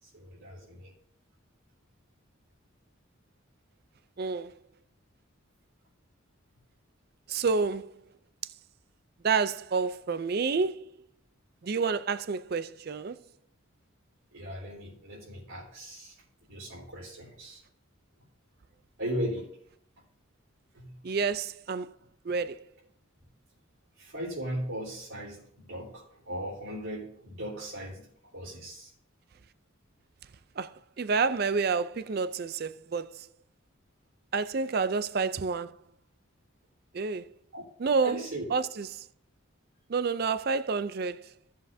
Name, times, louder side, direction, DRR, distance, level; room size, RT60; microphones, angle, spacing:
voice 1, 0.0-0.9 14.3-16.2 16.5-17.6 19.0-19.6 20.7-21.0 24.0-28.1 28.3-28.9 37.5-37.6 38.0-38.4, equal, 80° right, 3.9 m, -38 dB
voice 2, 4.2-4.5 7.3-7.9 9.2-10.9 11.6-13.2 21.0-21.9 22.2-22.6 30.6-33.3 34.3-35.8 36.9-37.3 37.8-38.2 38.5-39.1 39.9-41.3, right 4 dB, 45° right, 0.4 m, -29 dB
17.0 x 7.6 x 2.7 m
head